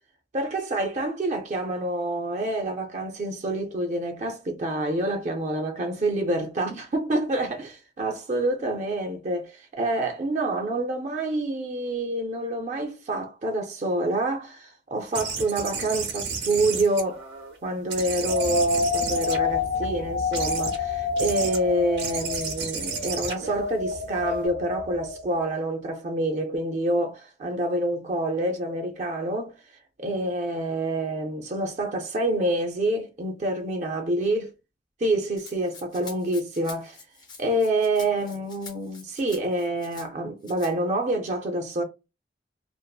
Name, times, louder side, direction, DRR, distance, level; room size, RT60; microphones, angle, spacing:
voice 1, 0.3-17.2 17.6-29.5 30.0-34.5 35.0-37.0 37.4-41.8, right 1 dB, 40° right, 0.4 m, -27 dB
sound 1, 15.1-17.6 17.9-19.8 20.3-20.8 21.2-21.6 22.0-24.5, right 5 dB, 80° right, 0.9 m, -33 dB
sound 2, 18.3-25.6, left 3 dB, 75° left, 0.5 m, -28 dB
Rattle (instrument), 35.4-40.1 40.4-40.7, left 4 dB, 25° left, 0.5 m, -46 dB
2.5 x 2.4 x 2.2 m
head